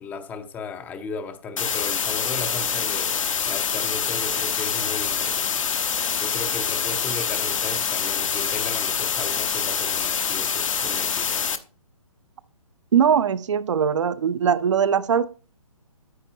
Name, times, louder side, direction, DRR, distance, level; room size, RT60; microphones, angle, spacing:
voice 1, 0.0-5.6 6.2-11.5, left 4 dB, 10° left, 0.6 m, -36 dB
sound 1, 1.6-11.6, left 7 dB, 60° left, 0.9 m, -25 dB
voice 2, 12.9-15.2, right 7 dB, 55° right, 0.6 m, -20 dB
9.5 x 8.5 x 2.8 m
figure-of-eight pair, 140°, 18 cm